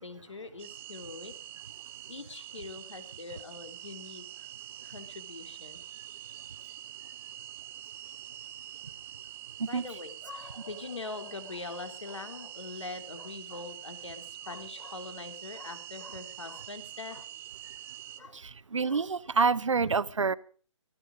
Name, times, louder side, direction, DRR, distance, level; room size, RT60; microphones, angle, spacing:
voice 1, 0.0-1.3 2.1-4.5 4.8-5.8 9.7-17.3 18.2-18.4 18.9-19.0, left 3 dB, 65° left, 8 dB, 3.2 m, -43 dB
sound 1, 0.6-18.2, right 12 dB, 10° right, 0.8 m, -45 dB
voice 2, 18.7-20.3, right 5 dB, 65° right, 17 dB, 0.9 m, -27 dB
17.5 x 14.0 x 5.1 m, 0.43 s
figure-of-eight pair, 145°, 17 cm